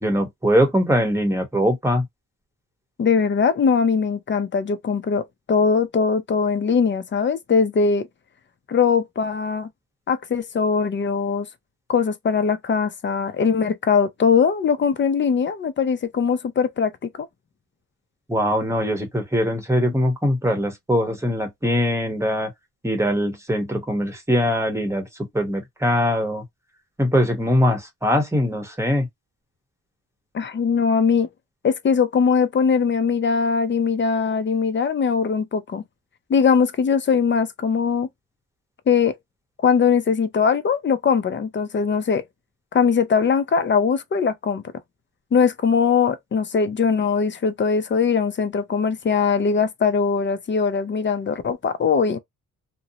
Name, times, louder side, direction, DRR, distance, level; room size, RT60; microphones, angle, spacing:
voice 1, 0.0-2.1 18.3-22.5 22.8-25.1 25.3-26.4 27.0-29.1, equal, 10° right, 0.8 m, -21 dB
voice 2, 3.0-8.1 8.7-9.7 10.1-11.5 11.9-16.9 17.2-17.3 30.3-31.3 31.6-35.8 36.3-38.1 38.9-39.1 39.6-42.2 42.7-44.6 45.3-52.2, left 6 dB, 30° left, 0.4 m, -21 dB
2.6 x 2.0 x 2.6 m
cardioid pair, 120°, 36 cm